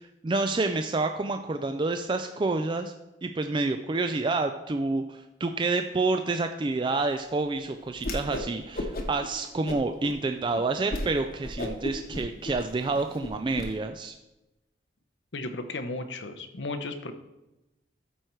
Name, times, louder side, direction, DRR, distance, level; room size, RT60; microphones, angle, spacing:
voice 1, 0.2-2.9 3.2-14.1, right 3 dB, 25° right, 7 dB, 0.4 m, -28 dB
Whoosh swoosh swish, 8.0-8.5 8.7-9.3 9.7-10.1 10.5-10.6 10.9-11.1 11.4-13.7, left 1 dB, 55° left, 1.1 m, -34 dB
voice 2, 15.3-17.1, left 2 dB, 85° left, 9 dB, 0.9 m, -34 dB
12.5 x 4.7 x 4.5 m, 0.96 s
head